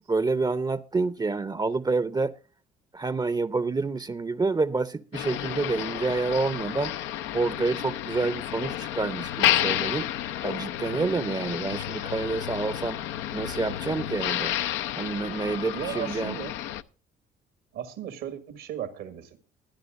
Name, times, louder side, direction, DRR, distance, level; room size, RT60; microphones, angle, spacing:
voice 1, 0.1-2.3 2.9-6.9 7.3-10.1 10.4-13.0 13.3-14.5 15.0-16.4, right 3 dB, 20° right, 0.6 m, -28 dB
Motor vehicle (road), 5.1-16.8, left 12 dB, 80° left, 0.6 m, -31 dB
voice 2, 15.7-16.5 17.7-19.4, right 10 dB, 85° right, 1.8 m, -36 dB
23.0 x 10.5 x 2.5 m
supercardioid pair, 65°, 19 cm